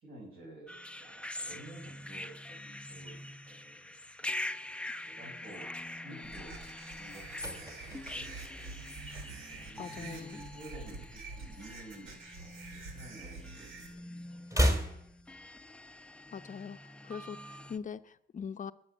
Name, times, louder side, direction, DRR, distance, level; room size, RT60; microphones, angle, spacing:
voice 1, 0.0-4.4 5.0-6.7 7.0-8.4 9.3-14.6, right 2 dB, 50° right, -5 dB, 7.0 m, -52 dB
sound 1, 0.7-17.8, left 1 dB, 5° left, 0.7 m, -44 dB
sound 2, 6.2-13.9, right 3 dB, 80° right, 3.5 m, -47 dB
sound 3, 7.1-9.7 10.0-10.3 10.5-12.0 12.3-13.6 13.9-16.0 16.3-16.4, equal, 15° right, 2.7 m, -35 dB
voice 2, 9.8-10.4 16.3-18.7, left 6 dB, 40° left, 11 dB, 0.7 m, -42 dB
20.5 x 7.9 x 7.2 m, 0.78 s
cardioid pair, 90°, 20 cm